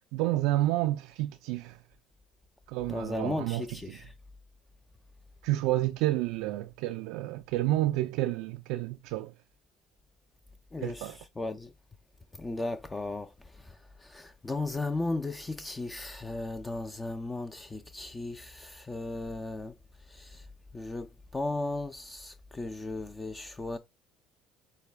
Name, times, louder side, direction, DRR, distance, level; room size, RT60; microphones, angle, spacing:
voice 1, 0.1-1.8 2.7-4.1 5.4-9.3 10.8-11.2, right 16 dB, 75° right, 0.4 m, -30 dB
voice 2, 2.9-4.1 10.7-11.7 12.4-19.7 20.1-20.5 20.7-23.8, left 2 dB, 20° left, 0.5 m, -36 dB
6.7 x 2.3 x 3.2 m
supercardioid pair, 80°, 0 cm